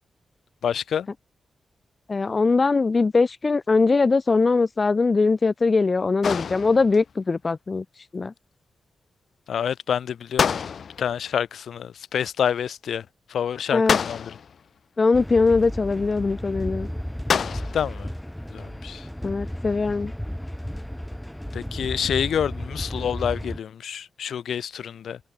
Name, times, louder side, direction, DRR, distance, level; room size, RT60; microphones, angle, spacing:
voice 1, 0.6-1.1 9.5-10.6 11.0-14.3 17.7-18.1 18.5-19.1 21.5-25.2, left 8 dB, 85° left, 2.8 m, -28 dB
voice 2, 2.1-7.8 8.1-8.3 13.7-14.0 15.0-16.9 19.2-20.1, left 4 dB, 35° left, 1.2 m, -21 dB
sound 1, 6.2-7.1 10.4-11.2 13.9-14.6 17.3-17.9, left 7 dB, 65° left, 3.6 m, -26 dB
sound 2, 15.1-23.6, equal, 5° left, 6.9 m, -34 dB
wide cardioid pair, 105°, 0 cm